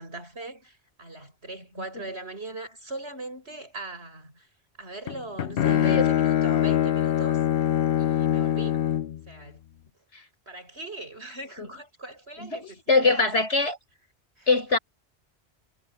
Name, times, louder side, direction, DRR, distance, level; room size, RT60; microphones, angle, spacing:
voice 1, 0.0-4.5 4.8-7.4 8.0-8.8 9.3-9.6 10.5-13.2 14.4-14.5, right 2 dB, 70° right, 7.2 m, -40 dB
Bowed string instrument, 5.1-9.2, left 11 dB, 60° left, 0.8 m, -23 dB
voice 2, 5.6-6.1 10.1-10.2 11.6-11.7 12.4-13.8 14.5-14.8, left 3 dB, 80° left, 5.1 m, -24 dB
omnidirectional pair, 1.1 m